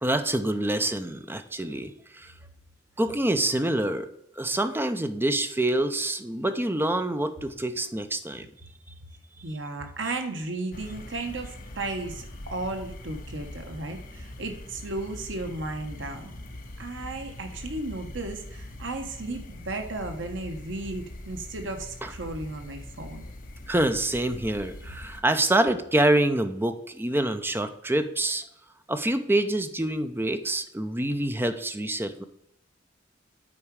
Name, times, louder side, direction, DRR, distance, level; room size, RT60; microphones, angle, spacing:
voice 1, 0.0-2.3 3.0-4.1 4.4-8.5 22.0-22.1 23.7-28.4 28.9-32.2, right 1 dB, 10° right, 9 dB, 0.5 m, -26 dB
voice 2, 9.4-16.4 16.8-23.3, right 2 dB, 75° right, 5 dB, 1.1 m, -34 dB
sound 1, 10.7-25.2, left 1 dB, 50° left, 1.0 m, -42 dB
8.6 x 4.8 x 4.8 m, 0.75 s
head